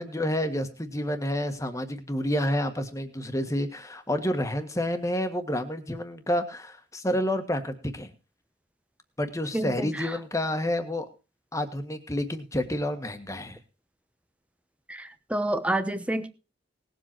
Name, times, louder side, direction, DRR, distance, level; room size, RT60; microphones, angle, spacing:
voice 1, 0.0-8.1 9.2-11.1 11.5-13.6, left 1 dB, 15° left, 1.6 m, -29 dB
voice 2, 9.5-9.9 14.9-16.3, right 1 dB, 5° right, 1.0 m, -28 dB
19.0 x 7.7 x 4.5 m
head